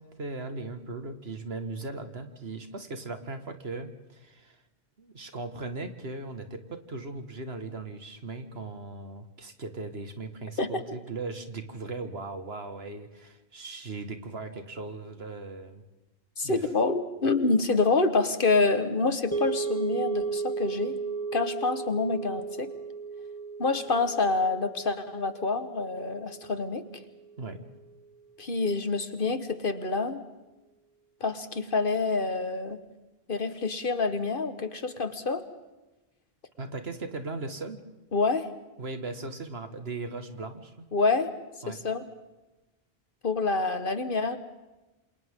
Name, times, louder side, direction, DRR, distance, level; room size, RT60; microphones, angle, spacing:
voice 1, 0.0-4.6 5.0-15.8 16.4-16.7 27.4-27.6 36.6-37.8 38.8-40.9 41.6-41.8, right 3 dB, 80° right, 7 dB, 2.1 m, -38 dB
voice 2, 16.4-21.0 21.3-22.7 23.6-26.8 28.4-30.2 31.2-32.8 33.3-35.4 38.1-38.5 40.9-41.3 41.7-42.1 43.2-44.4, left 3 dB, 60° left, 9 dB, 1.6 m, -27 dB
sound 1, 19.3-27.6, right 5 dB, 15° left, 2.5 m, -35 dB
28.0 x 27.5 x 3.8 m, 1.1 s
omnidirectional pair, 1.0 m